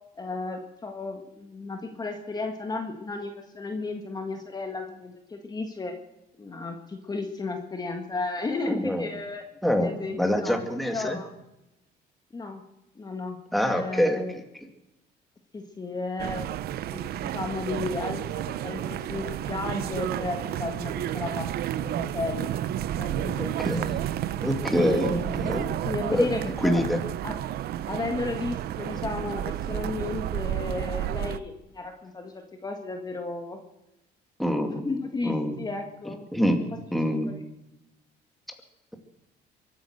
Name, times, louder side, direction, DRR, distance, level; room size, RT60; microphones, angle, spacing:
voice 1, 0.2-6.0 6.4-9.4 9.8-11.3 12.3-12.6 13.0-13.4 13.6-14.3 15.5-16.5 16.9-21.5 21.8-22.5 22.9-23.5 24.7-25.4 25.8-26.8 27.2-27.4 27.9-33.6 34.6-36.2 37.3-37.4, left 3 dB, 25° left, 4 dB, 1.7 m, -33 dB
voice 2, 8.7-9.1 9.6-9.9 10.2-11.2 13.5-14.2 23.4-24.0 24.4-25.7 26.1-26.3 26.6-27.0 34.4-34.8 35.2-35.6 36.3-36.6 36.9-37.3, equal, ahead, 4 dB, 2.3 m, -25 dB
sound 1, 16.2-31.4, right 11 dB, 65° right, 0.7 m, -31 dB
23.0 x 9.5 x 6.5 m, 0.93 s
cardioid pair, 110°, 17 cm